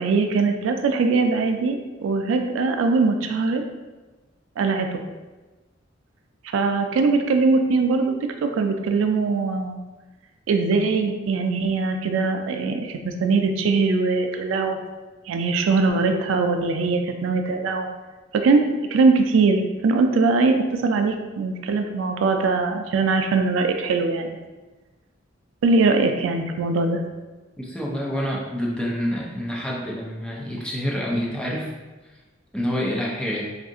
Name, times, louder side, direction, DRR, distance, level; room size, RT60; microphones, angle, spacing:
voice 1, 0.0-1.8 2.0-3.6 4.6-5.0 6.4-8.2 8.4-9.8 10.5-14.8 15.3-17.9 18.3-18.6 18.9-24.4 25.6-27.0, right 4 dB, 80° right, 5 dB, 0.3 m, -21 dB
voice 2, 27.6-31.7 32.5-33.5, equal, 5° left, -3 dB, 0.4 m, -27 dB
2.5 x 2.4 x 3.6 m, 1.2 s
head